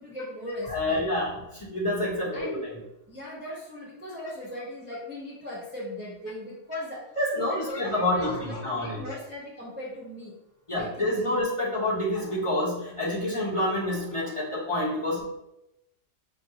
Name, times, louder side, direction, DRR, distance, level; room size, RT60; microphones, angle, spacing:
voice 1, 0.0-1.1 2.3-2.7 3.1-7.0 7.5-10.3 10.7-11.4 15.2-15.3, left 1 dB, 10° right, -6 dB, 0.6 m, -38 dB
voice 2, 0.7-2.7 7.2-9.0 10.7-15.3, left 1 dB, 25° left, -8 dB, 1.0 m, -28 dB
5.0 x 2.4 x 2.8 m, 0.88 s
omnidirectional pair, 1.3 m